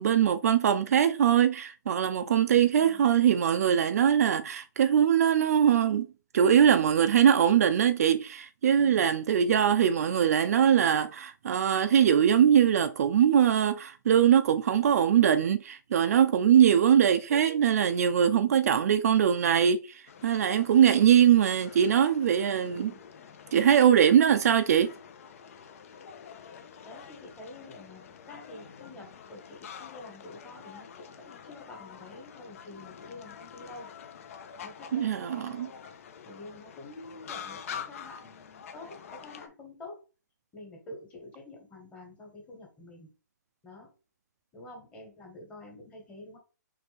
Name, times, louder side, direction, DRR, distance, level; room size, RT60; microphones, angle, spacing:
voice 1, 0.0-6.1 6.3-22.9 23.5-24.9 34.9-35.7, right 9 dB, 55° right, 0.4 m, -22 dB
voice 2, 2.7-3.0 8.8-9.1 18.3-18.7 22.7-23.0 26.4-33.9 34.6-35.7 36.2-40.0 40.5-43.1 43.6-43.9 44.5-46.4, left 2 dB, 15° left, 1.4 m, -48 dB
sound 1, 20.1-39.5, left 7 dB, 50° left, 0.6 m, -47 dB
4.4 x 3.3 x 3.4 m
hypercardioid pair, 155°, 10 cm